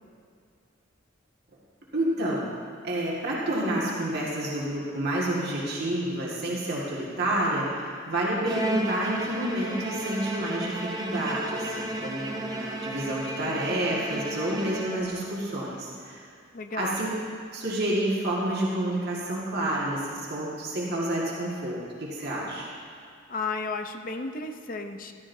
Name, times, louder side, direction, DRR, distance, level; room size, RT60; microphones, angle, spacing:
voice 1, 1.9-2.5 2.8-16.3 16.8-17.1 17.5-22.7, right 1 dB, 55° right, -5 dB, 1.8 m, -29 dB
Bowed string instrument, 8.5-15.4, right 1 dB, 20° right, 0.9 m, -33 dB
voice 2, 16.5-17.0 23.3-25.1, left 3 dB, 45° left, 6 dB, 0.6 m, -33 dB
14.5 x 13.0 x 2.7 m, 2.3 s
head